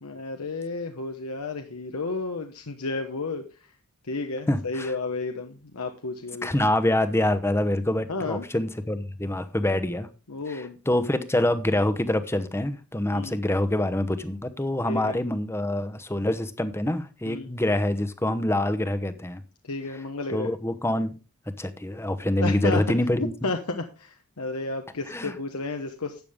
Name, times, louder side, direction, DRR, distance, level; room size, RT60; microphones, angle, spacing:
voice 1, 0.0-3.7 4.1-6.5 8.1-8.4 10.3-10.8 13.1-13.4 14.9-15.2 17.3-17.5 19.6-20.5 22.4-22.8 23.4-26.2, left 3 dB, 85° left, 1.1 m, -32 dB
voice 2, 4.5-4.9 6.4-10.1 10.5-19.4 20.3-21.2 21.6-23.5 25.1-25.3, left 1 dB, 10° left, 0.9 m, -26 dB
12.5 x 8.6 x 3.6 m
head